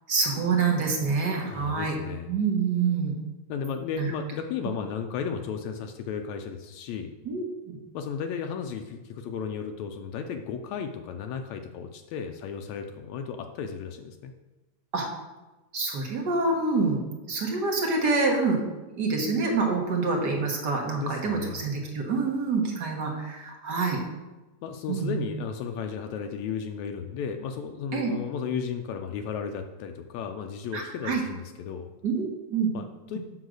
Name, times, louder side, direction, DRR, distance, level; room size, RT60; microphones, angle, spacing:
voice 1, 0.1-2.0 2.3-3.1 4.0-4.1 7.2-7.8 14.9-15.1 15.7-18.6 18.9-24.0 24.9-25.2 27.9-28.1 30.7-31.2 32.0-32.7, right 4 dB, 50° right, 1 dB, 1.3 m, -26 dB
voice 2, 1.5-2.3 3.5-7.1 7.9-14.3 21.0-21.7 24.6-31.9 32.7-33.2, left 6 dB, 80° left, 5 dB, 1.9 m, -34 dB
8.0 x 5.7 x 6.3 m, 1.1 s
omnidirectional pair, 3.4 m